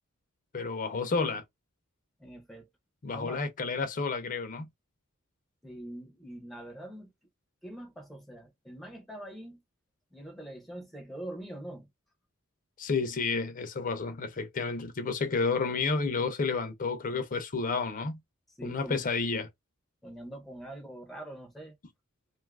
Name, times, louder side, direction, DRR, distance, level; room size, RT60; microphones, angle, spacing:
voice 1, 0.5-1.4 3.0-4.7 12.8-18.2 18.6-19.5, left 4 dB, 40° left, 0.5 m, -31 dB
voice 2, 2.2-2.7 3.1-3.4 5.6-7.1 7.6-9.6 10.1-11.9 18.6-19.0 20.0-21.8, right 1 dB, ahead, 0.6 m, -43 dB
2.6 x 2.4 x 3.3 m
head